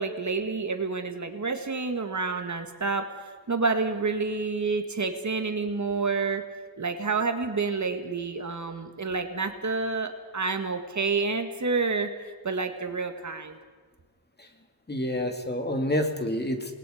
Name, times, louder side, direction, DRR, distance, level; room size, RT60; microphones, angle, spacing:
voice 1, 0.0-3.0 3.5-6.4 6.8-13.6, right 4 dB, 50° right, 6 dB, 1.9 m, -29 dB
voice 2, 14.9-16.7, left 1 dB, 25° left, 4 dB, 2.4 m, -28 dB
28.0 x 20.0 x 5.1 m, 1.4 s
wide cardioid pair, 90°, 37 cm